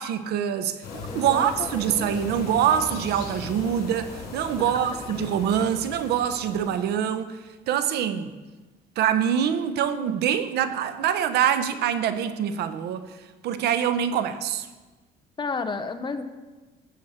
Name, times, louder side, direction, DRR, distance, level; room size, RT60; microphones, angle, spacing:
voice 1, 0.0-7.4 7.7-8.3 9.0-13.1 13.4-14.7, right 9 dB, 75° right, 0.8 m, -25 dB
sound 1, 0.8-6.8, left 4 dB, 75° left, 3.2 m, -38 dB
voice 2, 1.1-2.1 4.6-4.7 15.4-16.2, left 4 dB, 30° left, 0.9 m, -32 dB
13.5 x 7.7 x 4.3 m
cardioid pair, 110°, 17 cm